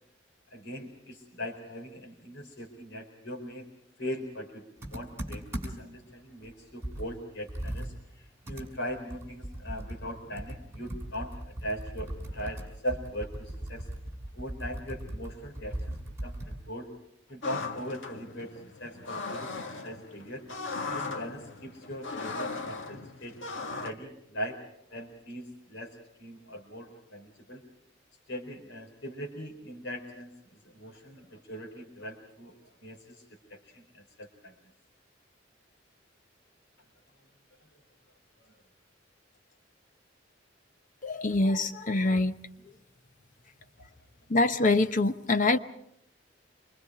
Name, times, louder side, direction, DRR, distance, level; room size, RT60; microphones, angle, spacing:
voice 1, 0.5-3.6 4.0-13.8 14.3-15.9 16.2-16.9 17.3-20.4 20.9-23.4 23.8-24.6 24.9-27.6 28.3-34.5 38.4-38.5, equal, 70° left, 3 dB, 4.5 m, -40 dB
Computer keyboard, 4.8-6.0 6.4-6.5 6.8-16.7, right 1 dB, 15° right, 5.7 m, -39 dB
sound 1, 17.4-23.9, left 3 dB, 85° left, 1.7 m, -38 dB
voice 2, 41.0-42.4 44.3-45.6, left 2 dB, 45° left, 9 dB, 0.9 m, -25 dB
27.5 x 24.0 x 4.9 m, 0.76 s
head